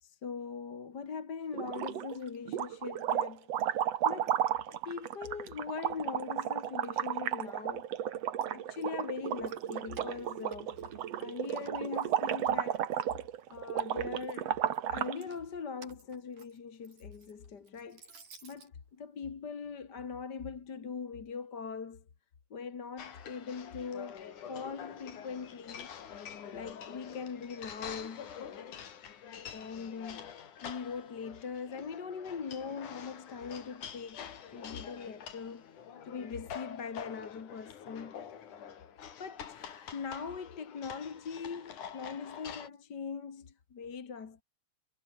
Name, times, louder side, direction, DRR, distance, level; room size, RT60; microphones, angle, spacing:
voice 1, 0.0-7.9 8.5-10.8 11.2-12.9 13.5-14.6 14.9-22.0 22.5-25.9 26.2-28.3 29.5-34.2 34.5-35.8 36.0-38.3 39.2-44.4, left 5 dB, 35° left, 2.1 m, -41 dB
sound 1, 1.5-2.2 2.5-15.2, right 10 dB, 60° right, 2.3 m, -33 dB
Keys jangling, 9.3-11.2 11.5-13.1 13.5-14.3 15.0-18.7, right 5 dB, 80° right, 7.2 m, -57 dB
sound 2, 23.0-42.7, left 8 dB, 75° left, 3.9 m, -46 dB
omnidirectional pair, 3.6 m